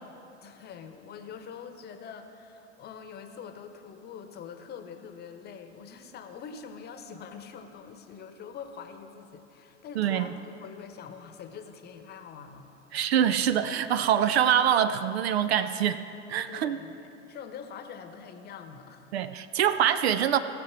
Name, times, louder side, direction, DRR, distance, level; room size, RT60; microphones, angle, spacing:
voice 1, 0.4-12.7 16.5-17.0 17.3-19.1, left 6 dB, 25° left, 7 dB, 1.0 m, -44 dB
voice 2, 10.0-10.3 12.9-16.0 16.3-16.8 19.1-20.4, right 9 dB, 55° right, 12 dB, 0.6 m, -24 dB
17.5 x 6.8 x 6.1 m, 2.9 s
figure-of-eight pair, 85°, 37 cm